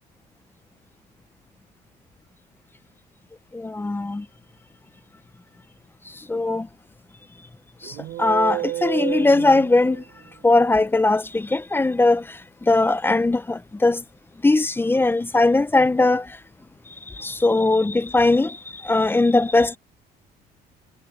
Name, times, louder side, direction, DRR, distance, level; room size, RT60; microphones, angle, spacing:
voice 1, 3.5-4.2 6.3-6.7 8.2-10.0 10.4-12.2 12.7-14.0 14.4-16.3 17.2-18.6 18.8-19.8, left 2 dB, 15° left, 0.8 m, -19 dB
sound 1, 7.8-10.4, right 16 dB, 80° right, 3.3 m, -31 dB
cardioid pair, 110°, 17 cm